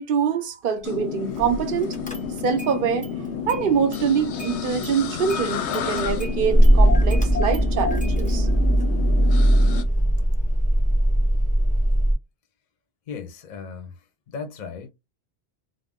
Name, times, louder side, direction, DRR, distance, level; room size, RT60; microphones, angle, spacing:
voice 1, 0.0-1.9 2.4-3.1 3.5-8.5, right 7 dB, 60° right, 0.7 m, -24 dB
sound 1, 0.8-9.8, left 6 dB, 90° left, 0.9 m, -30 dB
Car / Engine starting, 1.4-1.6 1.9-2.7 3.0-4.1 4.4-12.1, right 1 dB, 10° left, 0.6 m, -20 dB
voice 2, 13.1-14.0 14.3-14.9, left 5 dB, 50° left, 0.6 m, -36 dB
2.4 x 2.1 x 3.5 m
omnidirectional pair, 1.1 m